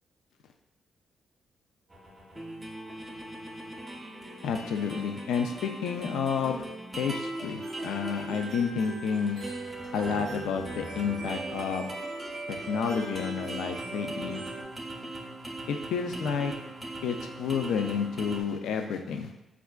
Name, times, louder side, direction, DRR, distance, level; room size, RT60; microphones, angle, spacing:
sound 1, 1.9-18.4, right 1 dB, 15° right, 0.5 m, -40 dB
voice 1, 4.4-6.7 7.0-9.4 9.9-11.9 12.5-14.4 15.7-16.5 17.0-19.3, left 6 dB, 90° left, 5 dB, 0.3 m, -30 dB
sound 2, 7.6-14.6, right 3 dB, 60° right, 0.5 m, -40 dB
4.2 x 2.3 x 2.2 m, 0.96 s
cardioid pair, 110°, 0 cm